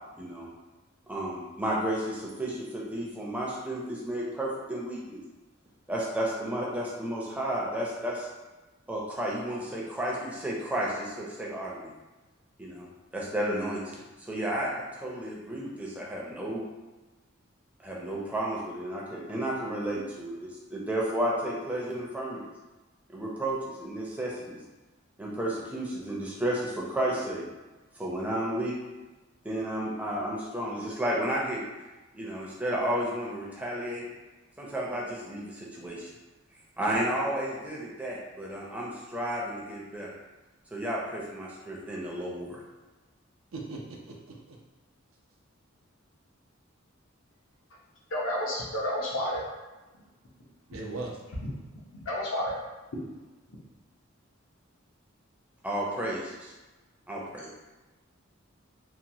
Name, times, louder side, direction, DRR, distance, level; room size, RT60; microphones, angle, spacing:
voice 1, 0.2-0.5 1.1-5.2 5.9-8.3 8.9-11.9 12.6-12.9 13.1-16.6 17.8-22.5 23.1-24.6 25.2-27.4 28.0-28.7 29.4-31.6 32.1-34.1 34.6-36.1 36.8-40.1 40.7-42.6 55.6-56.5 57.1-57.5, right 1 dB, 5° right, -4 dB, 0.5 m, -32 dB
voice 2, 43.5-44.6 50.7-51.2, right 2 dB, 85° right, -1 dB, 0.5 m, -39 dB
voice 3, 48.1-49.5 50.4-50.5 51.3-51.5 51.9-52.6 52.9-53.1 53.5-53.6, left 1 dB, 75° left, -3 dB, 0.7 m, -31 dB
2.9 x 2.1 x 2.7 m, 1.2 s
head